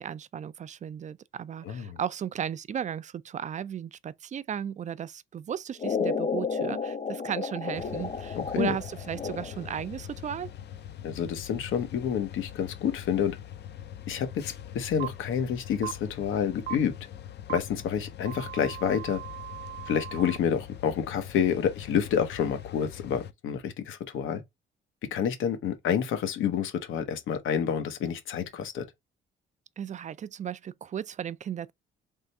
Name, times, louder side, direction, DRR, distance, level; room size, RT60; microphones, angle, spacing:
voice 1, 0.0-10.5 29.8-31.7, right 9 dB, 40° right, 0.4 m, -35 dB
voice 2, 1.7-2.0 8.4-8.7 11.0-13.4 14.1-16.9 17.5-19.2 19.9-24.4 25.1-28.8, left 8 dB, 80° left, 1.0 m, -28 dB
sound 1, 5.8-9.8, left 5 dB, 30° left, 1.0 m, -32 dB
sound 2, 7.7-23.3, left 10 dB, 60° left, 0.5 m, -43 dB
sound 3, 15.0-15.1 15.8-15.9 16.7-16.8 17.5-17.6 18.2-20.4, right 15 dB, 60° right, 0.8 m, -38 dB
3.6 x 3.3 x 4.1 m
cardioid pair, 90°, 20 cm